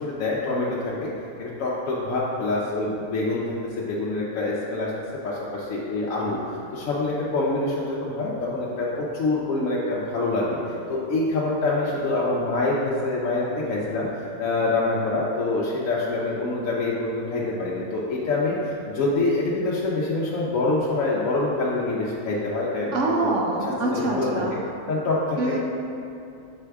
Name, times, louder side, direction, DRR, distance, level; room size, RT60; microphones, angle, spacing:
voice 1, 0.0-1.1 1.4-4.9 5.2-23.0 23.6-24.6 24.9-25.6, left 2 dB, 70° left, -6 dB, 1.1 m, -26 dB
voice 2, 22.9-24.6 25.4-25.6, right 2 dB, 65° right, -1 dB, 1.0 m, -25 dB
6.9 x 4.7 x 3.4 m, 2.7 s
omnidirectional pair, 1.5 m